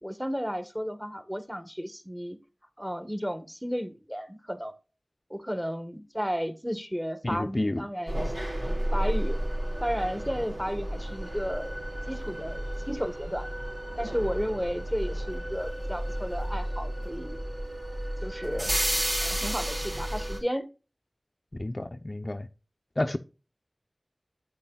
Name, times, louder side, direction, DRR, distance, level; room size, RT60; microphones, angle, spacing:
voice 1, 0.0-2.4 2.8-4.7 5.3-8.2 8.9-9.4 9.8-11.8 12.1-13.5 14.0-17.4 18.2-18.7 19.2-20.7, equal, 5° right, 1.1 m, -33 dB
voice 2, 7.2-7.8 21.6-22.5 23.0-23.2, left 1 dB, 45° left, 0.5 m, -30 dB
sound 1, 8.1-20.4, right 1 dB, 50° right, 3.4 m, -32 dB
8.5 x 8.4 x 2.3 m
wide cardioid pair, 45°, 0 cm